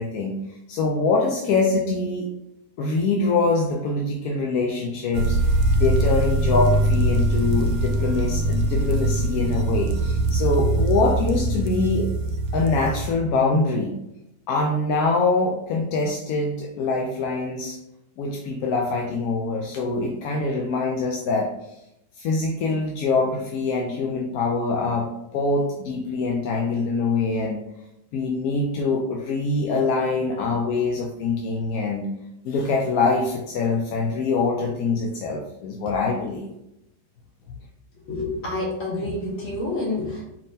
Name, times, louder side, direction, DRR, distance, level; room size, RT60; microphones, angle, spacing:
voice 1, 0.0-2.3 2.8-5.4 5.8-12.1 12.5-14.0 14.5-17.8 18.2-21.5 22.2-25.1 25.3-27.6 28.1-32.1 32.4-36.5 37.5-37.6, left 3 dB, 70° left, 0 dB, 0.9 m, -24 dB
sound 1, 5.1-13.1, right 1 dB, 65° right, 1.0 m, -22 dB
voice 2, 38.1-40.2, left 2 dB, 50° left, -6 dB, 2.1 m, -28 dB
5.2 x 3.6 x 2.7 m, 0.86 s
omnidirectional pair, 1.8 m